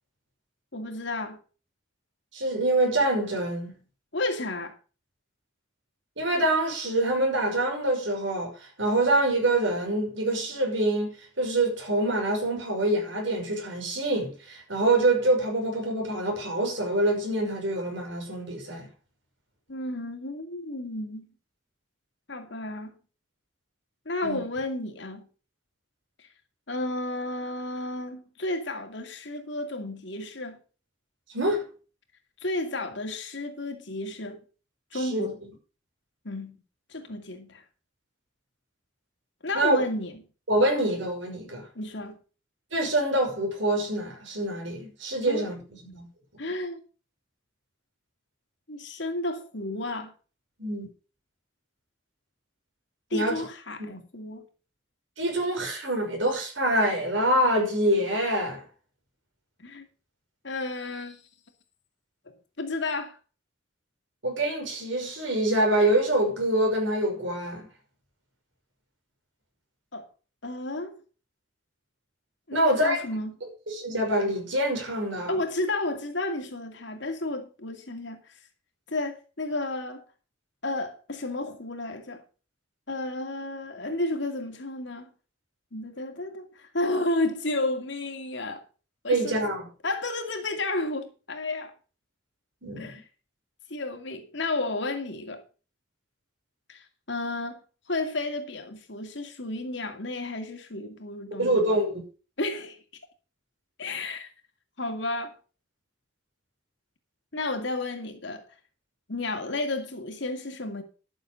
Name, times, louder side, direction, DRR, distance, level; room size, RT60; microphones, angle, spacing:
voice 1, 0.7-1.4 4.1-4.8 19.7-21.3 22.3-22.9 24.1-25.3 26.7-30.6 32.4-34.4 34.9-35.4 36.2-36.6 36.9-37.6 39.4-40.2 41.7-42.2 45.3-45.5 46.4-46.8 48.7-50.1 53.1-54.5 59.6-59.9 60.4-61.2 62.3-63.2 69.9-70.1 70.4-71.0 72.5-73.4 75.3-78.2 78.9-80.0 80.6-82.2 82.9-85.1 85.7-88.6 89.0-89.4 89.8-91.7 92.8-93.0 93.7-95.4 96.7-97.6 97.9-101.8 102.4-102.8 103.8-104.3 104.8-105.3 107.3-108.5 109.1-110.8, left 2 dB, 65° left, 2.4 m, -32 dB
voice 2, 2.3-3.8 6.2-8.5 8.8-18.9 24.2-24.4 31.3-31.6 34.9-35.3 39.5-39.8 40.5-41.6 42.7-45.6 45.8-46.1 50.6-50.9 53.1-53.4 53.8-54.0 55.2-58.6 64.2-67.7 72.5-73.1 73.7-75.3 89.1-89.6 92.6-92.9 101.4-102.0, right 1 dB, 70° right, 5.7 m, -25 dB
12.0 x 7.0 x 6.4 m
head